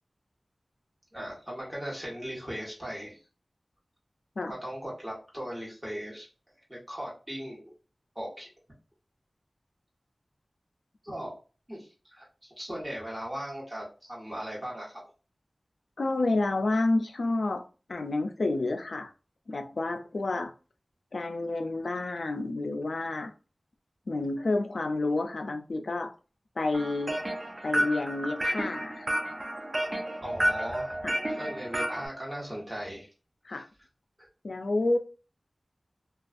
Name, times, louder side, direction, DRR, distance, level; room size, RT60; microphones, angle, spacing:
voice 1, 1.1-3.2 4.5-6.3 6.7-7.7 8.1-8.5 11.0-11.3 11.7-15.0 30.2-30.9 31.3-33.1 33.5-33.6, equal, 10° right, -5 dB, 1.2 m, -38 dB
voice 2, 16.0-17.6 17.9-19.1 19.5-20.5 21.1-23.3 24.1-26.1 26.6-27.2 27.6-29.2 31.0-31.1 33.5-33.7 34.4-35.0, left 2 dB, 90° left, 6 dB, 0.3 m, -29 dB
sound 1, 26.7-32.1, right 1 dB, 40° right, 0.4 m, -31 dB
2.5 x 2.3 x 2.4 m, 0.34 s
wide cardioid pair, 60°, 0 cm